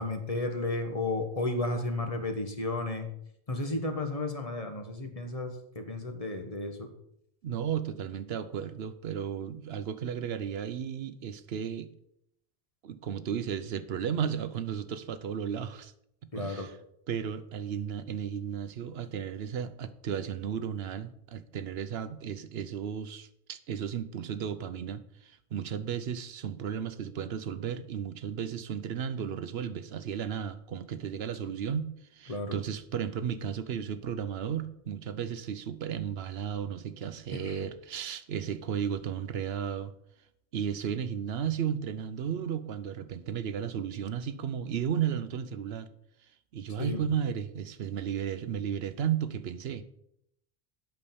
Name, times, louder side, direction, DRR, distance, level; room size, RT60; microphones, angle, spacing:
voice 1, 0.0-3.1 3.5-6.9 16.3-16.7 31.4-31.5 32.3-32.6 37.3-37.6 46.8-47.0, left 2 dB, 35° left, 1.3 m, -33 dB
voice 2, 7.4-11.9 12.8-15.9 16.4-16.7 17.1-39.9 40.5-45.9 46.5-49.8, right 8 dB, 75° right, 0.9 m, -34 dB
8.4 x 5.9 x 7.0 m
omnidirectional pair, 1.1 m